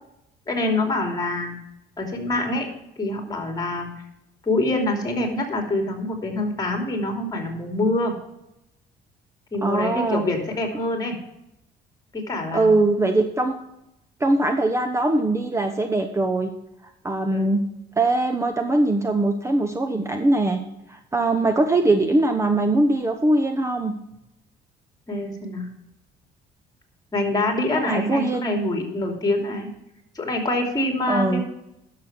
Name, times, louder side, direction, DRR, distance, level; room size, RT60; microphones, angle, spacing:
voice 1, 0.5-1.6 2.0-2.7 3.0-3.9 4.4-8.1 9.5-11.2 12.1-12.8 17.3-17.5 25.1-25.7 27.1-29.7 30.1-31.4, left 2 dB, 20° left, 3 dB, 2.9 m, -25 dB
voice 2, 9.6-10.3 12.5-13.5 14.2-16.5 17.0-17.6 18.0-20.6 20.9-23.9 27.7-28.6 31.1-31.4, right 2 dB, 15° right, 6 dB, 0.9 m, -21 dB
11.0 x 6.8 x 5.9 m, 0.87 s
cardioid pair, 110°, 17 cm